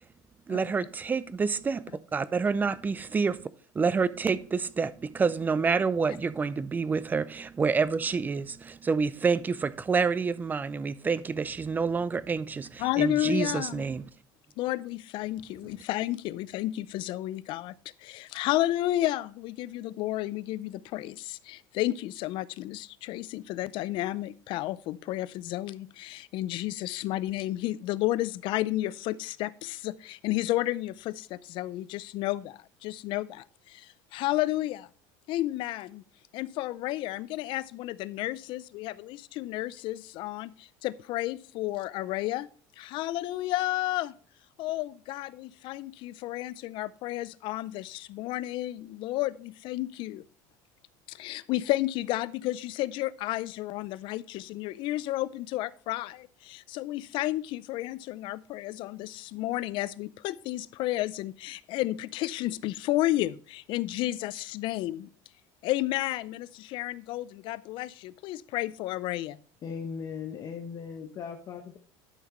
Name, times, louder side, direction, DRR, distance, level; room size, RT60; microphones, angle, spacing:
voice 1, 0.5-3.5 3.7-14.0, right 5 dB, 15° right, 0.4 m, -28 dB
voice 2, 12.8-13.8 14.6-17.7 18.0-34.9 35.3-36.0 36.3-42.5 42.8-44.1 44.6-50.2 51.1-65.1 65.6-69.4, left 16 dB, 55° left, 0.4 m, -32 dB
voice 3, 69.6-71.8, left 6 dB, 35° left, 1.0 m, -38 dB
12.0 x 5.7 x 3.1 m
supercardioid pair, 125°, 10 cm